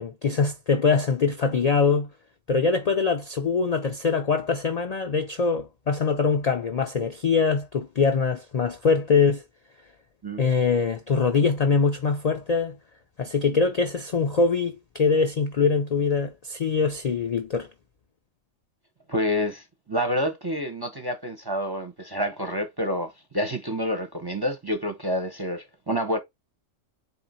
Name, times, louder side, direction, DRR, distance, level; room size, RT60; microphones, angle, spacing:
voice 1, 0.0-2.1 2.5-9.4 10.4-12.8 13.2-17.7, left 5 dB, 60° left, 0.4 m, -23 dB
voice 2, 19.1-26.2, equal, 25° right, 0.5 m, -28 dB
4.3 x 2.8 x 4.1 m
omnidirectional pair, 1.3 m